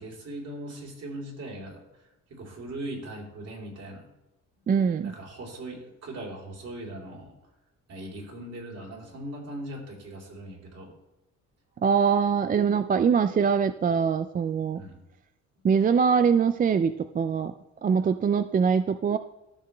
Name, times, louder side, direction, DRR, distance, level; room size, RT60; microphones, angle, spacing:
voice 1, 0.0-4.0 4.5-4.7 5.0-7.5 7.9-11.0 14.7-15.0 15.6-15.7, right 1 dB, 55° right, -1 dB, 3.3 m, -40 dB
voice 2, 4.7-5.1 11.8-14.8 15.6-17.5 17.8-19.2, right 6 dB, 30° right, 11 dB, 0.4 m, -23 dB
13.5 x 6.0 x 3.3 m, 0.98 s
cardioid pair, 90°, 30 cm